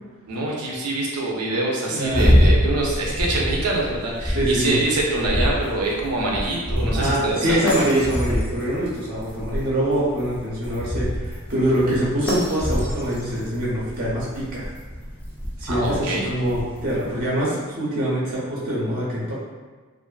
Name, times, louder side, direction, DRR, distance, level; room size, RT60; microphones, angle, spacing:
voice 1, 0.3-7.7 15.7-16.3, right 2 dB, 90° right, -3 dB, 0.6 m, -25 dB
voice 2, 1.8-2.3 4.3-4.7 6.9-14.7 15.6-19.3, right 1 dB, 40° right, -7 dB, 0.6 m, -24 dB
sound 1, 2.1-17.2, equal, 5° left, 0.3 m, -26 dB
2.4 x 2.4 x 2.2 m, 1.4 s
head